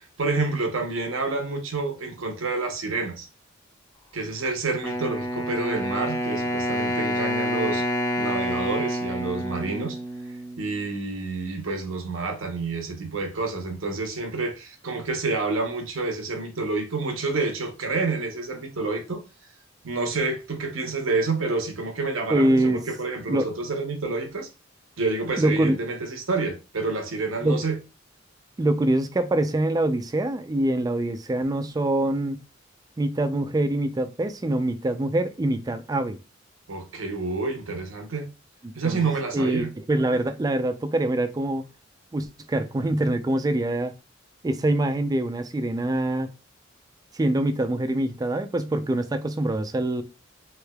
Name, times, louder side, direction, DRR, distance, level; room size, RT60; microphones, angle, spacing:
voice 1, 0.0-3.3 4.1-7.9 8.2-10.0 10.6-19.2 19.8-24.5 25.0-27.8 36.7-38.3 38.7-39.7, right 3 dB, 80° right, 0.9 m, -28 dB
Wind instrument woodwind instrument, 4.8-10.8, equal, 15° left, 0.6 m, -28 dB
voice 2, 22.3-22.8 23.3-23.5 25.4-25.8 27.4-27.6 28.6-32.4 33.0-36.2 38.6-39.0 39.3-41.6 42.1-43.9 44.4-46.3 47.1-50.0, right 1 dB, 20° right, 0.3 m, -24 dB
3.3 x 3.1 x 2.2 m
head